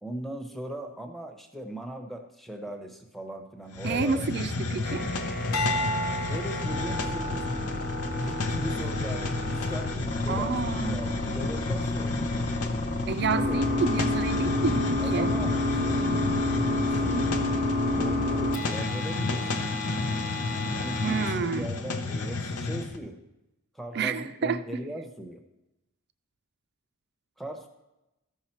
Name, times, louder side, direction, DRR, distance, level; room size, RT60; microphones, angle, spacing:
voice 1, 0.0-4.3 6.3-7.9 8.2-10.0 10.2-10.6 10.9-12.2 13.3-13.6 14.9-16.3 16.5-17.4 17.9-19.6 20.7-23.2 23.7-25.4 27.4-27.7, right 1 dB, ahead, 5 dB, 0.8 m, -38 dB
Hiss, 3.7-23.0, left 3 dB, 90° left, 0.8 m, -32 dB
voice 2, 3.8-5.1 10.3-11.0 13.1-15.3 21.0-21.7 23.9-24.6, right 5 dB, 50° right, 12 dB, 0.4 m, -29 dB
sound 1, 4.8-21.3, left 2 dB, 40° left, 0.9 m, -30 dB
sound 2, 5.5-10.0 10.6-11.0, equal, 65° left, 0.9 m, -35 dB
14.0 x 5.6 x 4.4 m, 0.95 s
head